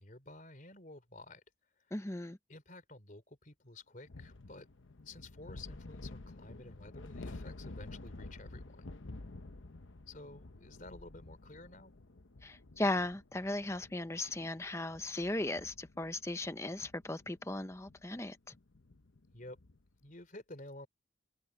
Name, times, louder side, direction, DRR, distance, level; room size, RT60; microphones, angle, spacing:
voice 1, 0.0-1.4 1.8-2.1 2.5-4.7 5.0-8.9 10.1-11.9 19.3-19.6 20.0-20.9, left 2 dB, 45° left, 3.7 m, -52 dB
voice 2, 1.9-2.4 12.4-18.5, left 2 dB, 15° left, 0.8 m, -37 dB
sound 1, 4.1-19.9, left 2 dB, 85° left, 1.0 m, -51 dB
open air
head